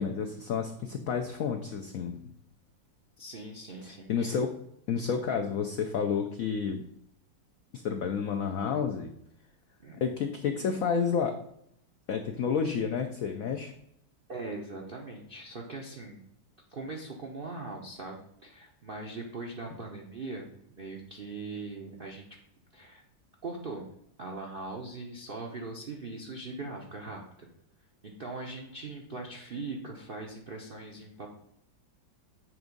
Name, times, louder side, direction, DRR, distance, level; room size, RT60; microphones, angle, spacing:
voice 1, 0.0-2.2 3.8-4.5 4.9-6.8 7.7-9.1 10.0-11.3 12.1-13.7, left 6 dB, 80° left, 5 dB, 0.7 m, -30 dB
voice 2, 3.2-4.4 9.8-10.2 14.3-16.2 16.7-22.3 22.7-23.0 23.4-23.8 24.2-27.5 28.0-31.3, right 3 dB, 65° right, 0 dB, 0.5 m, -41 dB
7.7 x 3.5 x 5.2 m, 0.75 s
omnidirectional pair, 2.1 m